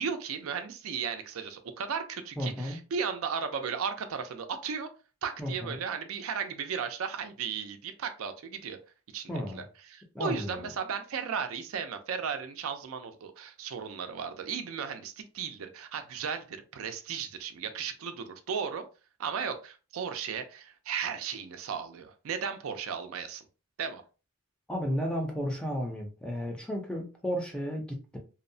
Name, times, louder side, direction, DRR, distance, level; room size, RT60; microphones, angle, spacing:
voice 1, 0.0-4.9 5.2-8.8 9.1-18.8 19.2-23.4 23.8-24.0, right 6 dB, 80° right, 0.4 m, -35 dB
voice 2, 2.4-2.8 5.4-5.8 9.3-9.6 10.1-10.7 24.7-28.2, equal, 5° left, 0.4 m, -33 dB
2.7 x 2.0 x 2.6 m
head